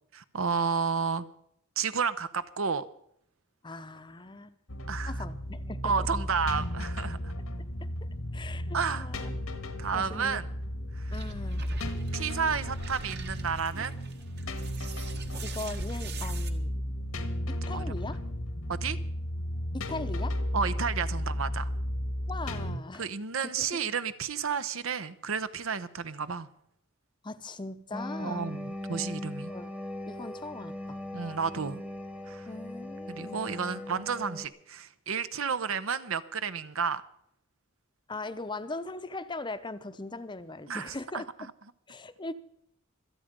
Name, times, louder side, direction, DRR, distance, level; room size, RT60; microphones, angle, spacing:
voice 1, 0.1-1.2 1.8-2.8 4.9-5.1 5.8-7.3 8.7-9.1 9.8-10.5 11.0-11.1 12.1-14.0 17.7-18.0 18.7-19.0 20.5-21.7 23.0-26.5 28.2-29.5 31.1-31.8 32.3-32.5 33.1-37.0 40.7-41.2, right 6 dB, 70° right, 14 dB, 0.8 m, -31 dB
voice 2, 3.6-4.6 5.0-6.1 8.3-9.3 9.9-10.4 11.1-11.6 15.4-17.0 17.5-18.2 19.7-20.4 22.3-23.1 23.4-23.7 27.2-28.5 29.5-29.7 30.1-31.0 32.5-33.4 38.1-41.3 41.9-42.3, left 2 dB, 20° left, 12 dB, 0.7 m, -40 dB
sound 1, 4.7-22.8, equal, 85° left, 1.7 m, -34 dB
sound 2, 11.1-16.5, right 4 dB, 50° right, 1.6 m, -44 dB
sound 3, 27.9-34.5, left 1 dB, 5° right, 1.1 m, -39 dB
25.5 x 8.8 x 5.2 m, 0.71 s
head